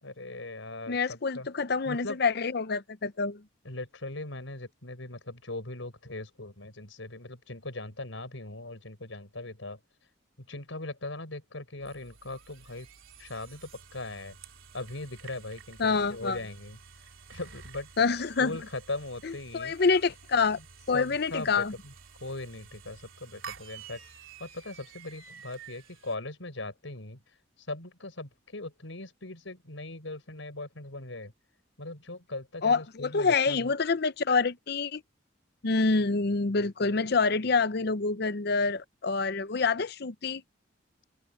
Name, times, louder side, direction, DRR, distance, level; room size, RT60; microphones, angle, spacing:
voice 1, 0.0-1.5 1.8-2.2 3.6-9.8 10.4-12.9 13.2-14.4 14.7-16.8 17.3-17.9 18.4-19.7 20.5-20.6 20.9-21.9 22.2-24.0 24.4-27.2 27.7-31.3 31.8-33.7, left 2 dB, 80° left, 4.8 m, -39 dB
voice 2, 0.9-3.4 15.8-16.4 18.0-18.5 19.2-20.6 20.9-21.7 32.6-35.0 35.6-40.4, left 4 dB, 55° left, 0.6 m, -27 dB
sound 1, 11.8-26.2, right 6 dB, 90° right, 3.5 m, -51 dB
open air
head